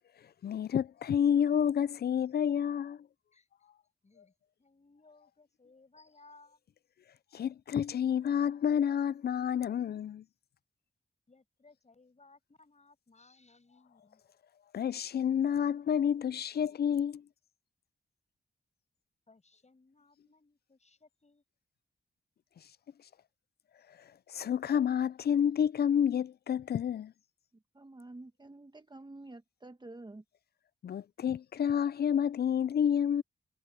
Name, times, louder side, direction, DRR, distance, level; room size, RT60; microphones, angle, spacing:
voice 1, 0.4-3.0 7.3-10.2 14.7-17.2 24.3-27.1 30.8-33.2, left 8 dB, 60° left, 0.5 m, -29 dB
voice 2, 4.0-6.6 11.3-14.2 19.3-21.4, left 3 dB, 40° left, 6.7 m, -62 dB
voice 3, 27.5-30.2, right 2 dB, 25° right, 1.5 m, -49 dB
cardioid pair, 55°, 18 cm